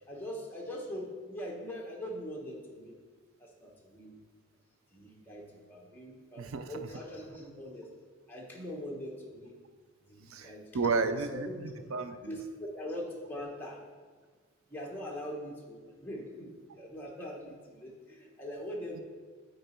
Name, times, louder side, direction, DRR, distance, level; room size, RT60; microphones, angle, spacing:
voice 1, 0.1-3.0 3.4-4.2 4.9-7.9 8.3-9.6 10.1-11.0 11.4-11.7 12.2-13.8 14.7-19.0, equal, 10° left, -2 dB, 1.0 m, -42 dB
voice 2, 6.4-6.7 10.3-12.4, right 4 dB, 70° right, 10 dB, 0.5 m, -33 dB
8.8 x 4.0 x 4.4 m, 1.5 s
head